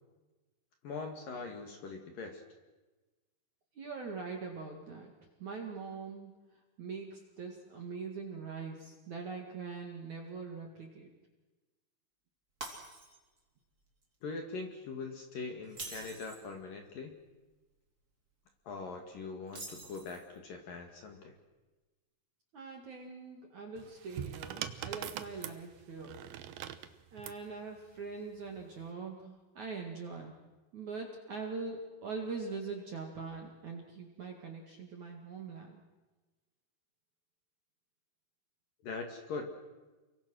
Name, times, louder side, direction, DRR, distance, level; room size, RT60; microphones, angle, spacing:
voice 1, 0.8-2.4 14.2-17.1 18.6-21.4 38.8-39.5, left 4 dB, 55° left, 3 dB, 2.9 m, -42 dB
voice 2, 3.8-5.1 5.4-6.3 6.8-11.1 22.5-26.2 27.1-30.3 30.7-35.8, right 4 dB, 50° right, 2 dB, 2.5 m, -42 dB
Shatter, 12.6-13.4 13.8-14.0 15.6-16.5 19.5-20.4, right 2 dB, 20° right, 3.4 m, -45 dB
sound 1, 23.8-27.4 28.5-28.9, right 11 dB, 85° right, 2.1 m, -42 dB
29.5 x 23.5 x 6.3 m, 1.2 s
omnidirectional pair, 5.9 m